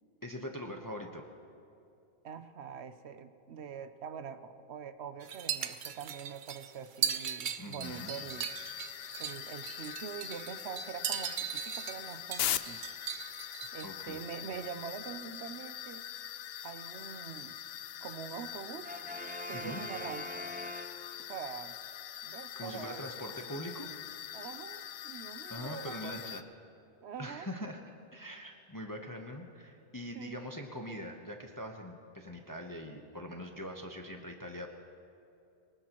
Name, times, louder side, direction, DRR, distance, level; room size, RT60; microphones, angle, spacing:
voice 1, 0.2-1.2 7.6-8.2 13.8-14.2 19.5-19.8 22.5-23.9 25.5-26.4 27.2-27.8 28.1-34.8, equal, 20° left, 2 dB, 0.9 m, -42 dB
voice 2, 2.2-8.5 9.2-12.8 13.7-16.1 16.6-17.6 18.0-18.9 19.5-20.4 21.3-21.7 22.2-23.1 24.3-26.2 27.0-27.5 30.1-30.5, right 7 dB, 75° right, 11 dB, 1.0 m, -44 dB
sound 1, 5.2-13.9, right 8 dB, 55° right, 0.7 m, -38 dB
sound 2, 7.8-26.4, left 11 dB, 70° left, 0.8 m, -42 dB
Brass instrument, 18.8-21.5, left 1 dB, 10° right, 0.6 m, -43 dB
23.5 x 19.0 x 3.0 m, 2.7 s
omnidirectional pair, 1.1 m